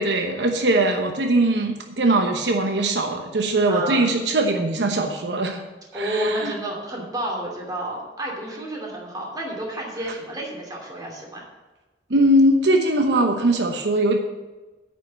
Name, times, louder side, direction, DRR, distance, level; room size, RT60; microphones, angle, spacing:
voice 1, 0.0-5.6 5.9-6.5 12.1-14.2, right 1 dB, 80° right, 3 dB, 0.9 m, -21 dB
voice 2, 3.7-4.1 5.9-11.4, right 1 dB, 20° right, -2 dB, 2.7 m, -30 dB
9.2 x 5.6 x 7.7 m, 1.2 s
head